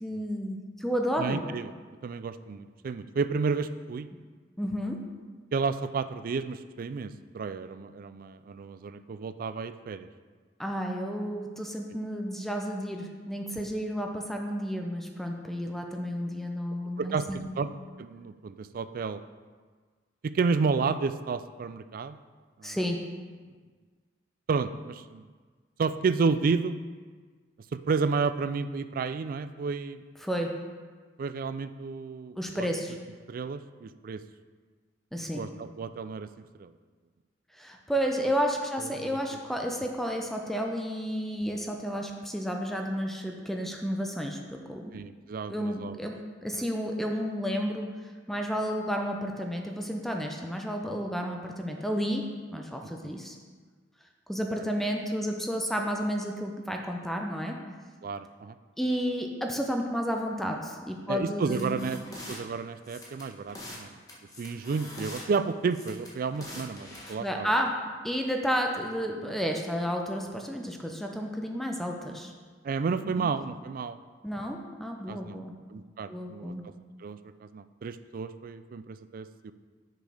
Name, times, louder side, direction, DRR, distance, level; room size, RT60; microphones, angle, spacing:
voice 1, 0.0-1.4 4.6-5.0 10.6-17.7 22.6-23.0 30.2-30.5 32.4-33.0 35.1-35.4 37.5-44.9 45.5-46.1 46.4-47.9 48.3-52.3 52.5-53.4 54.3-57.6 58.8-61.9 67.1-67.7 68.0-72.3 73.0-73.2 74.2-75.5 76.1-76.6, equal, ahead, 2 dB, 0.6 m, -31 dB
voice 2, 1.2-1.7 2.0-4.1 5.5-10.1 17.0-17.7 18.0-19.2 20.2-22.2 22.6-22.8 24.5-25.3 25.8-26.8 27.7-30.0 31.2-32.7 33.3-34.2 35.3-36.3 36.6-36.7 38.8-39.2 44.9-46.0 46.5-46.6 53.0-53.1 58.0-58.5 61.1-62.0 62.3-63.9 64.4-67.5 72.6-74.0 75.1-75.4 75.7-76.5 77.0-79.5, right 5 dB, 50° right, 12 dB, 0.3 m, -31 dB
sound 1, 61.4-62.4 62.8-63.8 64.1-65.2 65.7-67.1, left 1 dB, 20° left, 1.4 m, -44 dB
6.7 x 6.2 x 4.9 m, 1.5 s
head